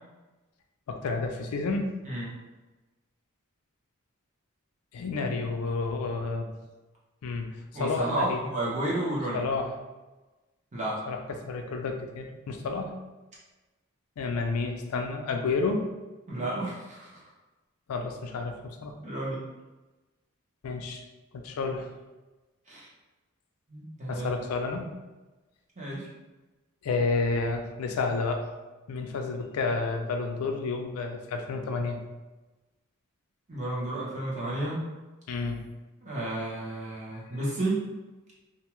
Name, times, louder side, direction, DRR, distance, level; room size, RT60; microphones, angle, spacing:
voice 1, 0.9-1.9 4.9-6.5 7.2-8.4 9.3-9.7 11.1-12.9 14.2-15.9 17.9-18.9 20.6-21.0 21.3-21.9 24.1-24.9 26.8-28.5 28.9-32.0 35.3-35.6, left 3 dB, 80° left, 4 dB, 0.4 m, -30 dB
voice 2, 7.7-9.4 10.7-11.0 16.3-17.2 19.0-19.4 22.7-22.9 23.7-24.3 25.8-26.1 33.5-34.8 36.0-37.9, right 1 dB, 35° right, -6 dB, 0.8 m, -31 dB
2.5 x 2.2 x 3.0 m, 1.1 s
head